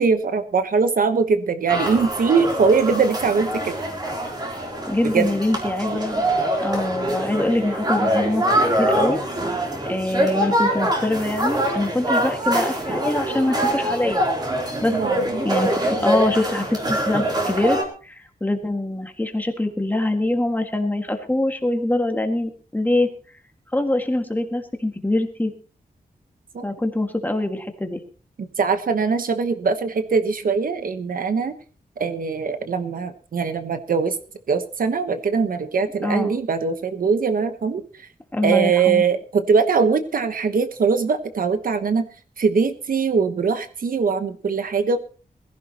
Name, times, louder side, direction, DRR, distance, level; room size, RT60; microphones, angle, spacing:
voice 1, 0.0-3.8 5.1-5.3 5.9-6.0 14.9-15.4 26.5-26.7 28.4-31.5 32.0-34.2 34.5-37.8 38.4-42.1 42.4-45.0, right 5 dB, 65° right, 9 dB, 1.1 m, -21 dB
sound 1, 1.7-17.8, right 1 dB, 25° right, 3.4 m, -24 dB
voice 2, 4.9-6.2 6.6-8.5 8.8-9.2 9.9-14.3 14.8-15.0 15.4-15.7 16.0-23.1 23.7-25.5 26.6-28.0 36.0-36.3 38.3-39.0, left 1 dB, 10° left, 4 dB, 1.9 m, -24 dB
21.5 x 15.5 x 3.0 m, 0.38 s
wide cardioid pair, 145°, 16 cm